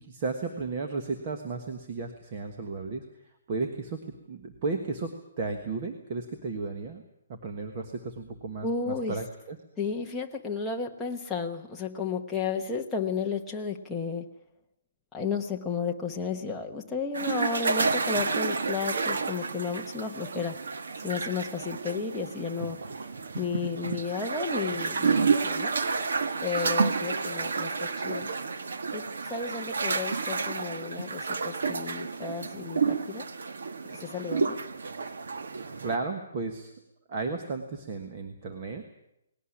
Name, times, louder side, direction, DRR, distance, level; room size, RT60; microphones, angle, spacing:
voice 1, 0.0-3.0 3.5-4.0 4.3-7.0 7.3-9.6 35.8-36.7 37.1-38.8, right 3 dB, 25° right, 4 dB, 1.4 m, -34 dB
voice 2, 8.6-9.2 9.8-14.3 15.1-20.6 21.0-22.8 23.3-25.7 26.4-28.3 28.9-33.3 34.0-34.6, left 5 dB, 5° left, -1 dB, 1.0 m, -33 dB
sound 1, 17.1-36.0, right 4 dB, 65° right, 1.5 m, -30 dB
19.5 x 17.5 x 9.9 m, 0.83 s
hypercardioid pair, 180°, 0 cm